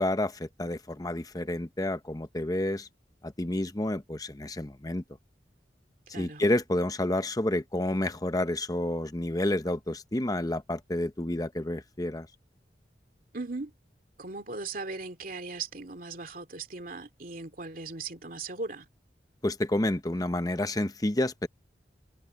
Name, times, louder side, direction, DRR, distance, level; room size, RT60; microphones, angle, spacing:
voice 1, 0.0-2.9 3.2-5.0 6.2-12.3 19.4-21.5, left 1 dB, 20° left, 0.9 m, -29 dB
voice 2, 6.1-6.4 13.3-13.7 14.2-18.9, right 3 dB, 50° right, 2.6 m, -38 dB
open air
head